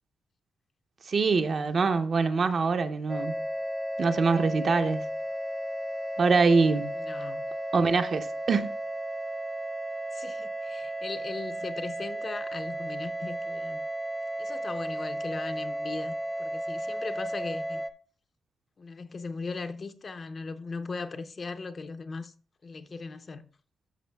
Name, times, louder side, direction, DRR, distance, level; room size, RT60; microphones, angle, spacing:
voice 1, 1.1-3.5 4.0-5.1 6.2-6.9 7.7-8.7, right 4 dB, 50° right, 0.6 m, -24 dB
sound 1, 3.1-17.9, right 1 dB, 10° right, 0.6 m, -34 dB
voice 2, 6.9-7.5 10.1-13.8 14.4-17.8 18.8-22.3 22.6-23.4, left 4 dB, 40° left, 0.5 m, -38 dB
12.5 x 6.1 x 2.2 m
cardioid pair, 105°, 0 cm